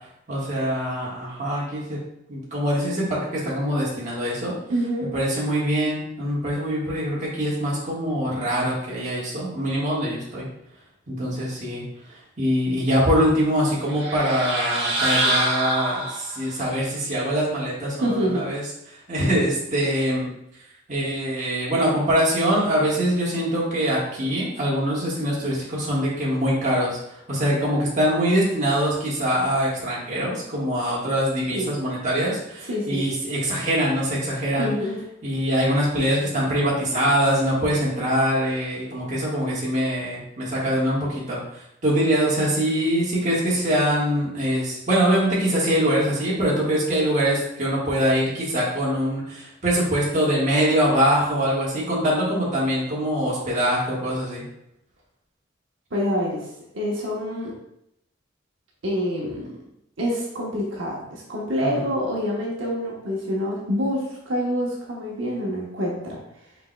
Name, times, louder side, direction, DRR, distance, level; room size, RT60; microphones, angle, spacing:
voice 1, 0.3-2.0 2.3-4.5 5.1-10.5 11.1-11.8 12.1-18.6 18.9-20.3 20.9-34.7 35.2-54.4 61.6-61.8, equal, 40° right, -6 dB, 1.5 m, -23 dB
voice 2, 4.7-5.1 18.0-18.5 31.5-31.8 32.7-33.0 34.6-35.0 55.9-56.5 56.7-57.6 58.8-59.5 60.0-66.2, equal, 85° right, -3 dB, 1.0 m, -26 dB
sound 1, 13.9-16.5, right 1 dB, 65° right, 1.3 m, -25 dB
5.2 x 4.4 x 2.2 m, 0.78 s
head